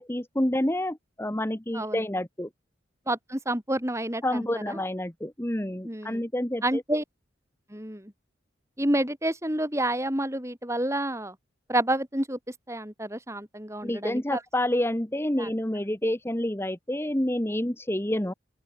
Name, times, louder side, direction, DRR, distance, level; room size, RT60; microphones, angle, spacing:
voice 1, 0.0-2.5 4.2-6.8 13.8-18.3, left 1 dB, 15° left, 1.2 m, -28 dB
voice 2, 3.1-4.8 5.8-6.2 6.6-7.0 7.7-8.1 8.8-11.3 11.7-12.4 12.7-14.4 15.4-15.5, right 1 dB, 15° right, 6.1 m, -29 dB
open air
head